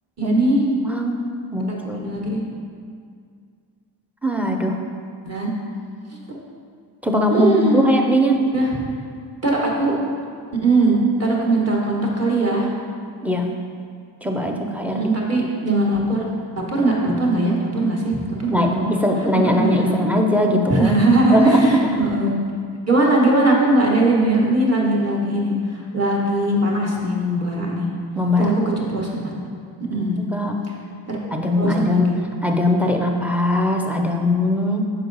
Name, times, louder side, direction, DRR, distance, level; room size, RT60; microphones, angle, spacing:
voice 1, 0.2-0.6 1.9-2.4 5.2-5.5 7.3-7.9 8.5-8.7 9.4-9.9 10.6-12.7 14.9-16.3 16.7-18.9 19.5-20.0 20.7-22.3 22.8-27.9 28.4-28.5 28.9-29.3 29.9-30.2 31.1-31.2 31.6-32.1, right 2 dB, 35° right, -3 dB, 1.3 m, -20 dB
voice 2, 0.8-1.2 1.5-2.0 4.2-4.8 7.0-8.4 13.2-13.5 14.2-15.1 18.5-20.9 21.3-21.9 28.2-28.5 30.2-30.6 31.3-32.0 32.4-34.8, left 1 dB, 5° right, 2 dB, 0.4 m, -20 dB
6.3 x 4.7 x 3.9 m, 2.2 s
cardioid pair, 110°, 46 cm